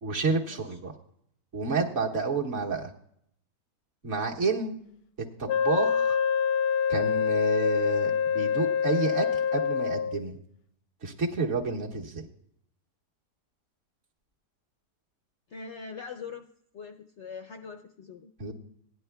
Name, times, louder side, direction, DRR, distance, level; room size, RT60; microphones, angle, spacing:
voice 1, 0.0-0.9 1.5-2.9 4.0-4.8 5.4-6.2 6.9-9.3 9.5-10.4 11.0-12.3 18.4-18.5, right 3 dB, 45° right, -1 dB, 1.6 m, -29 dB
Wind instrument woodwind instrument, 5.5-10.2, left 7 dB, 90° left, 1.3 m, -26 dB
voice 2, 15.5-16.5 16.7-18.3, left 5 dB, 70° left, 6 dB, 0.7 m, -42 dB
18.0 x 11.0 x 2.2 m, 0.69 s
omnidirectional pair, 1.8 m